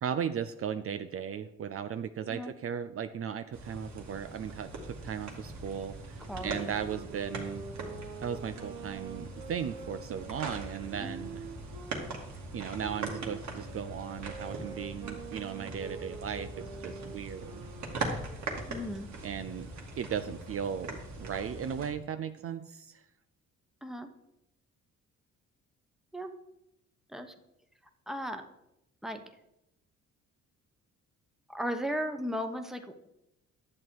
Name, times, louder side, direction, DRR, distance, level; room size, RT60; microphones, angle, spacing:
voice 1, 0.0-7.7 8.2-11.4 12.5-17.7 19.2-19.7 20.0-23.0, right 8 dB, 50° right, 10 dB, 0.5 m, -37 dB
sound 1, 3.5-21.9, right 2 dB, 70° right, 2.2 m, -41 dB
Wind instrument woodwind instrument, 6.2-12.0 12.7-18.2, right 5 dB, 90° right, 1.3 m, -46 dB
voice 2, 6.3-6.8 11.0-11.2 18.7-19.1 23.8-24.1 26.1-26.3 27.1-27.3 28.1-28.4 29.0-29.2 31.5-33.1, equal, ahead, 6 dB, 1.1 m, -36 dB
11.0 x 7.6 x 4.7 m, 0.87 s
cardioid pair, 90°, 30 cm